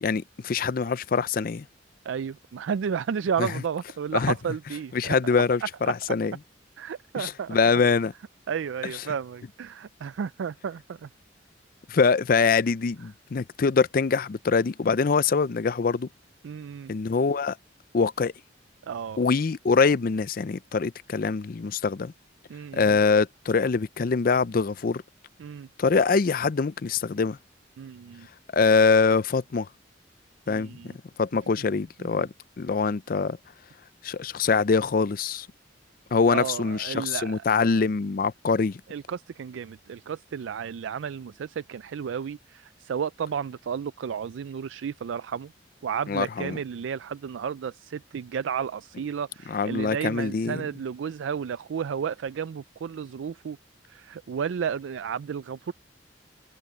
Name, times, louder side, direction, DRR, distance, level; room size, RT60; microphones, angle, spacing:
voice 1, 0.0-1.7 3.4-3.5 4.1-4.3 4.9-6.3 7.2-8.1 11.9-16.1 16.9-17.6 17.9-18.3 19.2-22.1 22.7-25.0 25.8-27.4 28.5-29.7 30.5-30.7 31.2-32.3 32.6-33.4 34.0-35.5 36.1-38.8 46.1-46.6 49.5-50.6, left 5 dB, 50° left, 0.4 m, -24 dB
voice 2, 2.1-5.1 6.8-7.6 8.5-11.1 16.4-16.9 18.8-19.2 22.5-23.0 25.4-25.7 27.8-28.3 30.5-31.0 32.0-32.3 36.3-37.4 38.9-45.5 45.8-53.6 53.9-55.7, right 7 dB, 90° right, 0.4 m, -32 dB
head